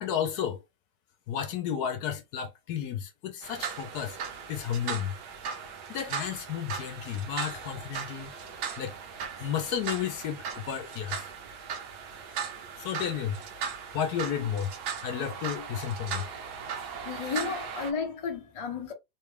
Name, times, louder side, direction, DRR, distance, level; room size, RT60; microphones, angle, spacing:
voice 1, 0.0-0.6 1.3-4.2 4.5-5.1 5.9-8.3 8.8-8.9 9.4-11.3 12.8-13.4 13.9-14.7 15.0-16.2, left 9 dB, 70° left, 1.1 m, -32 dB
sound 1, 3.4-17.9, right 7 dB, 70° right, 1.3 m, -38 dB
voice 2, 16.9-18.9, left 5 dB, 40° left, 0.5 m, -33 dB
3.7 x 2.2 x 3.2 m
omnidirectional pair, 1.9 m